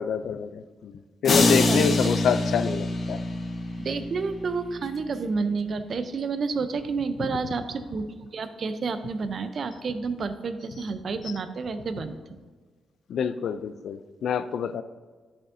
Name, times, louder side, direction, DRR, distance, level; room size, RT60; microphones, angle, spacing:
voice 1, 0.0-3.2 7.2-7.3 11.2-11.3 13.1-14.8, left 7 dB, 75° left, 12 dB, 0.4 m, -27 dB
sound 1, 1.2-3.6, left 4 dB, 55° left, 1.1 m, -28 dB
Bass guitar, 1.3-5.4, left 1 dB, 15° left, 1.0 m, -27 dB
voice 2, 1.6-2.0 3.8-12.4, right 4 dB, 50° right, 10 dB, 0.6 m, -30 dB
10.0 x 7.1 x 2.7 m, 1.4 s
cardioid pair, 105°, 0 cm